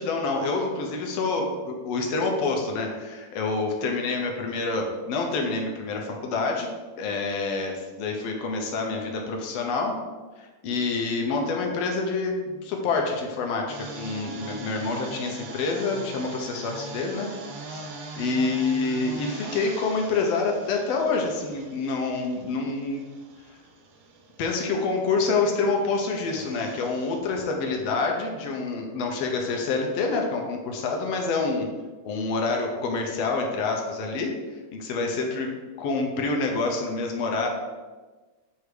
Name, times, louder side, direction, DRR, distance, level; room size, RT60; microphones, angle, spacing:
voice 1, 0.0-6.7 7.0-10.0 10.4-17.3 17.7-17.8 18.2-23.0 24.4-31.7 32.0-34.3 34.7-35.5 35.8-37.5, left 3 dB, 65° left, 2 dB, 1.8 m, -27 dB
sound 1, 13.7-27.2, right 3 dB, 65° right, 1.8 m, -42 dB
8.1 x 3.5 x 4.8 m, 1.3 s
omnidirectional pair, 3.5 m